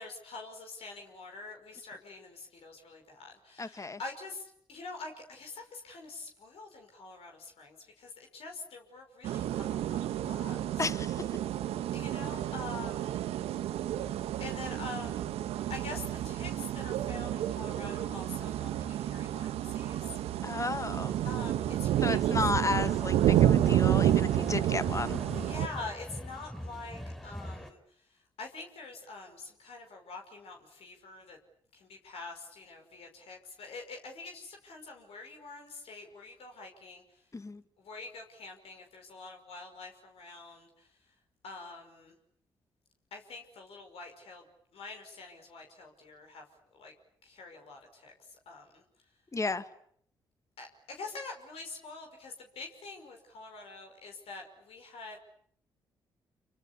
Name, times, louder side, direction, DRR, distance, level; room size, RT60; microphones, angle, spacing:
voice 1, 0.0-10.0 10.3-10.8 11.9-13.2 14.4-15.3 15.7-20.1 21.2-22.4 25.3-27.8 28.4-31.4 31.7-37.0 37.8-40.7 41.4-42.1 43.1-44.4 44.7-46.4 46.7-46.9 47.2-48.1 48.5-48.8 50.6-55.2, left 3 dB, 65° left, 3 dB, 5.6 m, -45 dB
voice 2, 3.6-4.0 10.8-11.2 20.4-21.1 22.0-25.2 37.3-37.6 49.3-49.6, left 3 dB, 30° left, 12 dB, 2.0 m, -33 dB
sound 1, 9.2-25.7, right 12 dB, 75° right, 1.3 m, -30 dB
sound 2, 22.7-27.7, left 1 dB, 5° left, 5.2 m, -42 dB
27.0 x 24.5 x 8.5 m, 0.65 s
hypercardioid pair, 50°, 11 cm